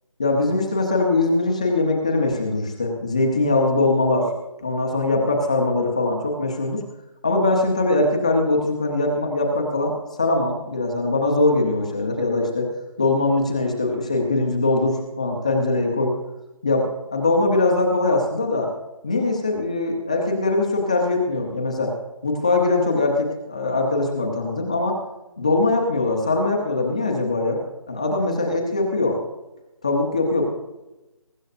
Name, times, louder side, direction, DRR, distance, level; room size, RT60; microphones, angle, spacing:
voice 1, 0.2-4.3 4.6-6.8 7.2-12.7 13.0-16.1 16.6-18.7 19.0-21.9 22.2-25.0 25.4-27.6 27.9-29.2 29.8-30.4, left 2 dB, 10° left, 0 dB, 0.9 m, -21 dB
22.5 x 12.0 x 2.6 m, 1.0 s
figure-of-eight pair, 175°, 18 cm